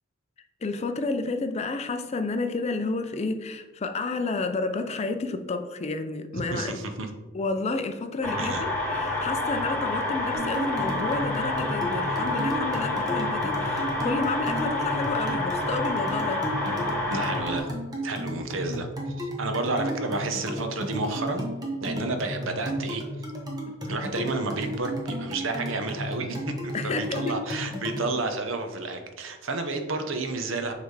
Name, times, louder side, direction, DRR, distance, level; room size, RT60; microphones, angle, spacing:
voice 1, 0.6-6.8 7.3-16.5 23.6-24.0 26.7-27.4, left 3 dB, 30° left, 8 dB, 0.4 m, -31 dB
voice 2, 6.5-7.1 8.3-8.6 17.1-17.7 18.0-21.4 21.8-23.3 23.9-30.7, right 3 dB, 70° right, 6 dB, 0.8 m, -31 dB
sound 1, 8.2-17.6, left 2 dB, 5° left, 1.8 m, -28 dB
sound 2, 10.3-28.1, equal, 20° right, 1.0 m, -33 dB
6.6 x 3.4 x 4.7 m, 1.1 s
head